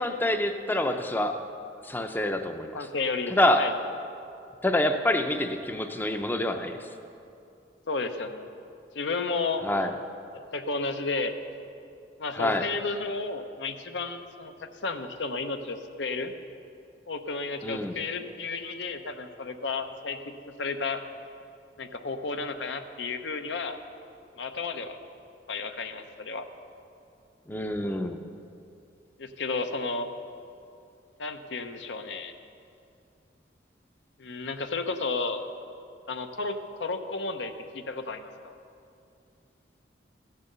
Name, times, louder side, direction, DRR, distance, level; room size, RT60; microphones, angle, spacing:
voice 1, 0.0-1.4 1.8-2.8 3.4-3.6 4.6-6.8 9.6-9.9 12.4-12.7 17.6-18.0 27.5-28.2, left 1 dB, 10° left, 6 dB, 0.5 m, -26 dB
voice 2, 2.7-3.8 7.9-8.5 8.9-9.7 10.5-11.3 12.2-16.3 17.1-21.0 21.8-23.8 24.4-25.0 25.5-26.4 29.2-30.1 31.2-32.3 34.2-35.4 36.1-38.5, left 3 dB, 85° left, 8 dB, 0.8 m, -32 dB
15.0 x 6.8 x 6.7 m, 2.6 s
head